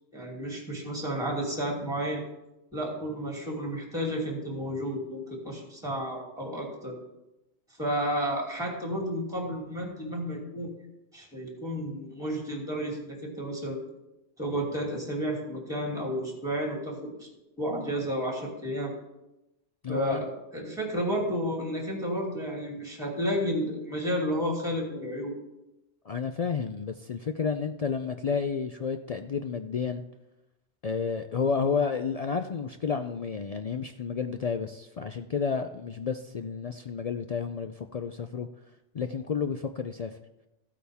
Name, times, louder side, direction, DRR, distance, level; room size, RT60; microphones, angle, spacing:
voice 1, 0.1-2.2 2.7-6.9 7.8-10.7 11.1-13.8 14.4-17.3 17.6-18.9 19.9-25.3, equal, 5° right, -1 dB, 2.5 m, -32 dB
voice 2, 19.8-20.2 26.1-30.0 30.8-38.5 38.9-40.2, left 6 dB, 60° left, 7 dB, 0.4 m, -31 dB
14.5 x 8.5 x 3.5 m, 0.94 s
omnidirectional pair, 1.2 m